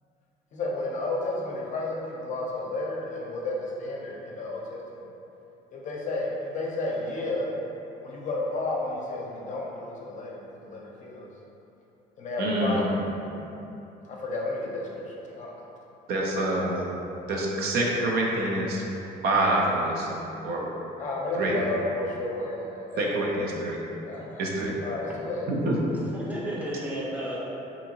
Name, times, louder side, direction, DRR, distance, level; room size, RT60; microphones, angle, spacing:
voice 1, 0.5-5.0 5.7-7.5 8.0-11.3 12.2-13.1 14.1-15.7 21.0-23.5 24.1-25.5, left 2 dB, 45° left, -3 dB, 0.5 m, -32 dB
voice 2, 12.4-12.8 16.1-16.9 17.3-18.8 19.2-20.7 21.4-21.6 23.0-23.8 24.4-24.7 25.5-25.8, right 1 dB, 70° right, -2 dB, 0.5 m, -26 dB
voice 3, 25.9-27.4, right 1 dB, 10° right, -6 dB, 0.6 m, -34 dB
2.7 x 2.7 x 2.7 m, 2.9 s
cardioid pair, 110°, 17 cm